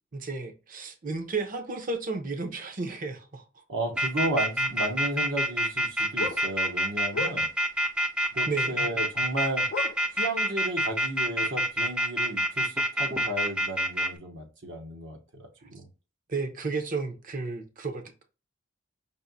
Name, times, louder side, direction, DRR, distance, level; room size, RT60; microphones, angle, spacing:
voice 1, 0.1-3.4 8.5-8.9 16.3-18.2, right 3 dB, 45° right, 0.7 m, -33 dB
voice 2, 3.7-7.5 8.3-9.7 10.1-15.9, right 1 dB, 70° right, 0.9 m, -33 dB
sound 1, 4.0-14.1, equal, 5° right, 0.4 m, -26 dB
sound 2, 4.5-5.4 5.7-7.8 8.6-9.0 9.3-9.4 9.7-10.7 11.0-11.1 11.6-11.7, left 4 dB, 70° left, 0.5 m, -36 dB
5.2 x 2.6 x 2.6 m
head